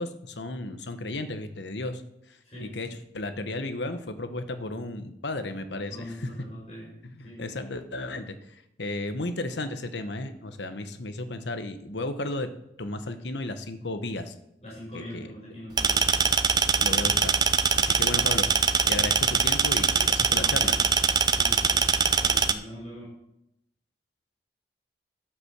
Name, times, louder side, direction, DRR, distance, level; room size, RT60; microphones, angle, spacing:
voice 1, 0.0-2.0 2.3-6.3 7.0-12.5 12.8-14.3 14.9-15.3 16.8-17.4 17.8-20.8, left 2 dB, 85° left, 9 dB, 1.1 m, -34 dB
voice 2, 5.9-6.9 7.2-7.4 14.6-16.0 20.3-20.7 21.3-21.8 22.2-23.1, equal, 35° left, -5 dB, 5.1 m, -42 dB
sound 1, 15.8-22.5, right 6 dB, 25° right, 0.5 m, -23 dB
12.5 x 6.0 x 6.6 m, 0.80 s
head